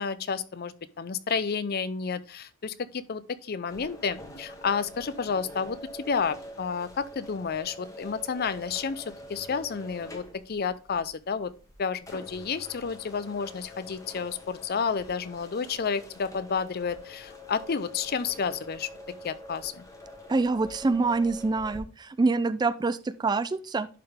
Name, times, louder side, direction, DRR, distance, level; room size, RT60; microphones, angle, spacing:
voice 1, 0.0-11.5 11.8-18.9 19.2-19.8, left 6 dB, 45° left, 0.5 m, -31 dB
sound 1, 3.7-21.8, left 1 dB, 15° left, 1.2 m, -45 dB
voice 2, 20.3-23.9, right 3 dB, 20° right, 0.3 m, -26 dB
11.0 x 3.9 x 3.6 m
head